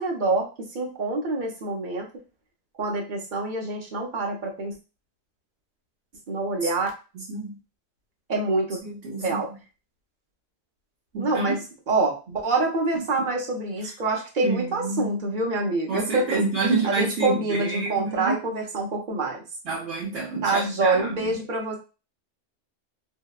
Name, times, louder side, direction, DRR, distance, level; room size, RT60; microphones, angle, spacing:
voice 1, 0.0-2.1 2.8-4.7 6.3-6.9 8.3-8.8 9.2-9.5 11.2-11.6 11.9-19.4 20.4-21.8, right 3 dB, 50° right, 0 dB, 0.7 m, -26 dB
voice 2, 8.8-9.4 11.1-11.6 12.9-13.3 14.4-15.2 15.9-18.4 19.7-21.3, right 3 dB, 70° right, -4 dB, 1.0 m, -28 dB
2.7 x 2.0 x 2.3 m, 0.31 s
omnidirectional pair, 1.2 m